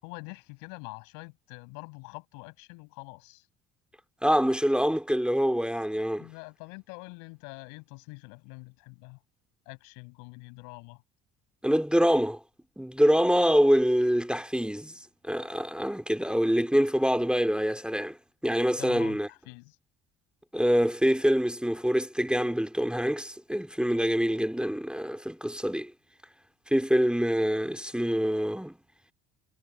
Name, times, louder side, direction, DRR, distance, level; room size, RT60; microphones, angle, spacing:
voice 1, 0.0-3.5 6.2-9.2 9.7-11.0 18.7-19.8, left 33 dB, 85° left, 7.0 m, -45 dB
voice 2, 4.2-6.3 11.6-12.4 12.8-14.9 15.2-18.2 18.4-19.3 20.5-25.9 26.7-28.7, equal, 5° right, 2.4 m, -25 dB
supercardioid pair, 80°, 32 cm